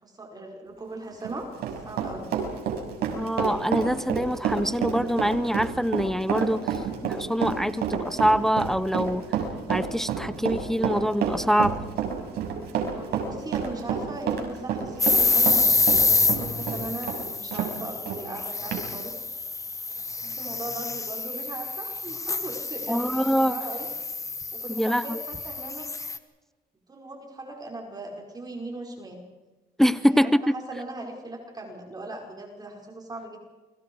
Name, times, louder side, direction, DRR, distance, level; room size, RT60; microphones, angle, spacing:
voice 1, 0.0-1.5 1.9-2.4 12.9-19.3 20.2-23.9 24.5-25.9 26.9-29.2 29.9-30.3 30.7-33.4, right 2 dB, 25° right, 1 dB, 5.4 m, -38 dB
Run, 1.1-17.7 18.1-18.2 18.7-18.8, right 7 dB, 70° right, 6.2 m, -29 dB
voice 2, 3.1-6.7 7.0-9.2 9.7-11.8 22.9-23.6 24.7-25.2 29.8-30.5, equal, ahead, 15 dB, 0.7 m, -24 dB
sound 1, 15.0-26.2, left 3 dB, 20° left, 1.5 m, -27 dB
29.0 x 23.5 x 4.8 m, 1.2 s
cardioid pair, 110°, 17 cm